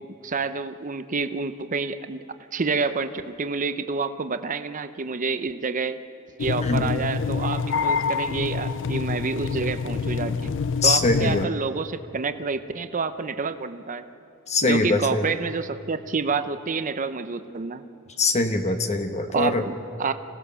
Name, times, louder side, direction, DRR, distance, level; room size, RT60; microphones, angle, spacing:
voice 1, 0.2-2.2 2.5-6.0 6.4-10.5 10.8-14.0 14.6-17.8 19.3-20.1, right 4 dB, 35° right, 10 dB, 0.7 m, -28 dB
sound 1, 6.4-11.5, left 5 dB, 60° left, 0.5 m, -26 dB
voice 2, 6.6-6.9 10.8-11.5 14.5-15.4 18.2-19.6, left 3 dB, 30° left, 6 dB, 1.1 m, -23 dB
26.0 x 17.5 x 6.9 m, 3.0 s
head